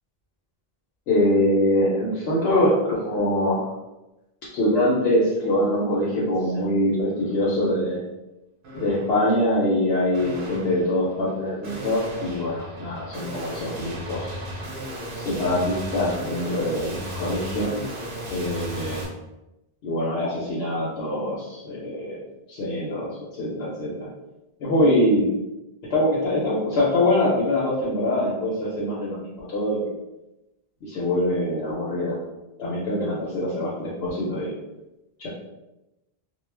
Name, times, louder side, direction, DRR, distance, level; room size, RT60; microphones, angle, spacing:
voice 1, 1.1-3.7 4.5-8.0 8.7-14.4 15.3-17.7 18.3-19.0 19.8-22.2 22.5-24.1 24.6-25.3 25.9-29.9 30.8-32.2 32.6-34.5 35.2-35.3, left 1 dB, 85° left, -7 dB, 0.9 m, -24 dB
sound 1, 5.3-5.5 5.9-6.6 7.1-7.6 8.6-9.3 10.1-19.1, equal, 85° right, 0.9 m, -36 dB
2.3 x 2.1 x 3.2 m, 0.97 s
omnidirectional pair, 1.0 m